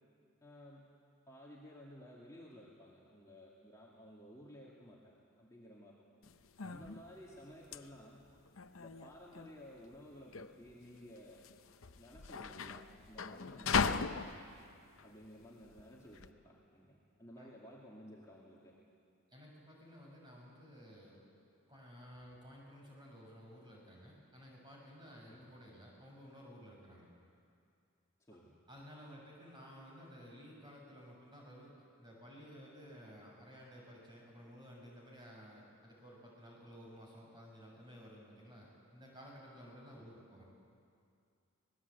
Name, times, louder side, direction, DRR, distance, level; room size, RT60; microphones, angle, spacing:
voice 1, 0.4-0.9 1.3-6.0 6.6-8.3 8.8-11.5 11.9-14.5 15.0-18.8 25.3-25.5 28.3-28.6 39.9-40.1, equal, 15° left, -5 dB, 2.3 m, -55 dB
sound 1, 6.2-16.3, left 5 dB, 70° left, 0.7 m, -39 dB
voice 2, 19.3-21.2 21.7-27.1 28.7-31.7 32.0-40.4, equal, 20° right, -3 dB, 6.1 m, -54 dB
24.5 x 19.5 x 8.3 m, 2.4 s
head